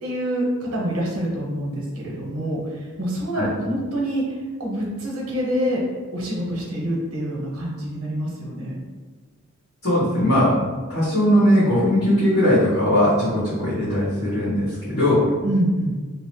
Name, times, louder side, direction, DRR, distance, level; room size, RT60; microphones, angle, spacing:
voice 1, 0.0-5.8 6.1-8.8 15.4-16.0, equal, 85° right, -3 dB, 0.8 m, -26 dB
voice 2, 9.8-10.6 10.9-15.3, equal, 60° left, -14 dB, 1.2 m, -19 dB
2.7 x 2.0 x 3.0 m, 1.4 s
head